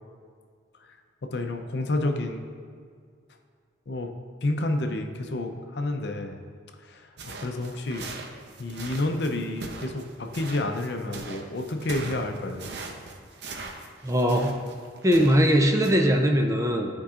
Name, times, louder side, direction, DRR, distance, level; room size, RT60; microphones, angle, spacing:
voice 1, 1.2-2.4 3.9-4.1 4.4-6.4 6.8-8.1 8.6-12.7, left 2 dB, 60° left, 5 dB, 0.6 m, -30 dB
sound 1, 7.2-15.5 15.8-16.1, right 3 dB, 60° right, 0.7 m, -40 dB
voice 2, 14.0-14.5 15.0-16.9, equal, 15° right, 2 dB, 0.5 m, -21 dB
13.0 x 4.6 x 2.5 m, 2.1 s
head